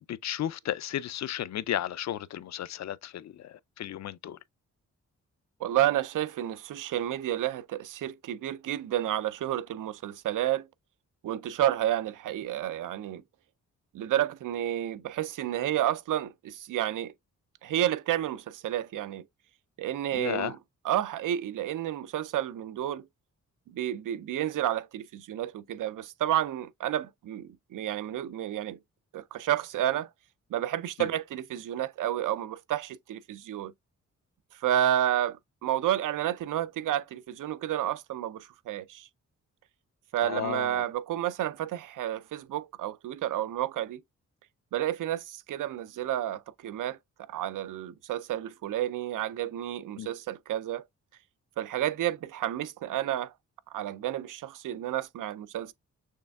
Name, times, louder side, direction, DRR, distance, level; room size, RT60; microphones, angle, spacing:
voice 1, 0.1-4.4 20.1-20.5 31.0-31.1 40.2-40.8 50.0-50.1, left 11 dB, 60° left, 0.4 m, -34 dB
voice 2, 5.6-10.7 11.2-13.2 13.9-17.1 17.6-19.2 19.8-20.6 20.8-23.0 23.7-28.8 29.1-30.1 30.5-33.7 34.6-39.1 40.1-44.0 44.7-47.0 47.3-50.8 51.6-53.3 53.7-55.7, right 12 dB, 80° right, 0.5 m, -30 dB
6.5 x 3.3 x 2.3 m
cardioid pair, 90°, 31 cm